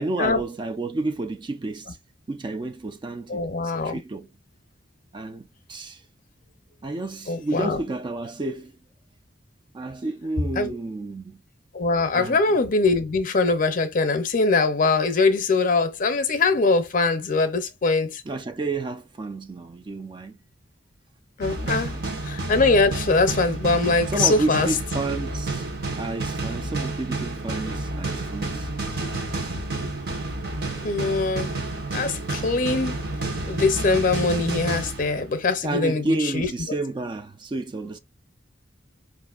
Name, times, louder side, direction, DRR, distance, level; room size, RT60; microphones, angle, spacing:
voice 1, 0.0-2.0 2.3-4.3 5.1-6.0 6.8-8.8 9.7-11.4 12.1-12.4 18.3-20.4 21.5-22.0 24.1-25.6 26.0-28.7 35.6-38.0, right 2 dB, 25° right, 0.3 m, -30 dB
voice 2, 3.3-4.0 7.3-7.8 10.6-10.7 11.7-18.2 21.4-22.0 22.2-24.7 30.8-31.6 31.9-32.9 33.5-36.5, left 3 dB, 45° left, 0.6 m, -22 dB
sound 1, 21.4-35.6, right 2 dB, 60° right, 1.0 m, -30 dB
4.9 x 2.5 x 2.3 m
head